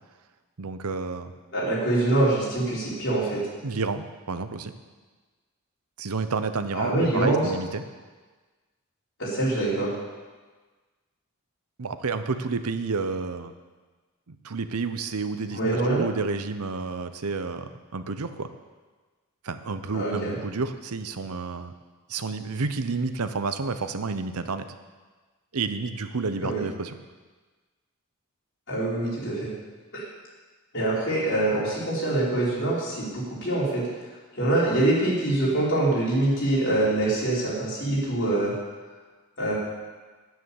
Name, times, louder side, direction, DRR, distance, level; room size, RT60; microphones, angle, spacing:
voice 1, 0.6-1.3 3.6-4.7 6.0-7.8 11.8-13.5 14.3-15.6 15.9-18.5 19.4-21.7 22.1-24.7 25.5-27.0, right 4 dB, 85° right, 10 dB, 0.8 m, -30 dB
voice 2, 1.5-3.4 6.7-7.4 9.2-9.9 15.5-16.0 19.9-20.3 26.4-26.6 28.7-29.5 29.9-30.0 30.7-33.8 34.3-38.5 39.4-39.5, right 2 dB, 55° left, -7 dB, 4.8 m, -24 dB
9.6 x 9.6 x 7.1 m, 1.3 s
head